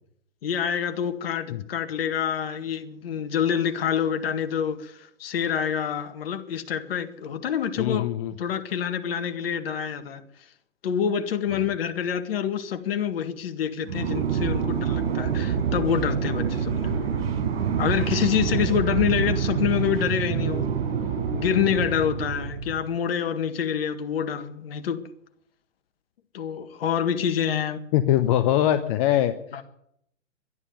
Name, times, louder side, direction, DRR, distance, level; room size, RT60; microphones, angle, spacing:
voice 1, 0.4-8.0 8.4-10.2 10.8-17.0 17.8-20.7 21.3-25.0 26.3-27.8 29.5-29.6, left 8 dB, 50° left, 1.9 m, -27 dB
voice 2, 7.8-8.3 11.5-11.6 27.9-29.6, left 12 dB, 30° left, 0.8 m, -23 dB
sound 1, 13.8-22.8, right 7 dB, 55° right, 5.4 m, -26 dB
12.5 x 11.0 x 9.5 m
hypercardioid pair, 130°, 37 cm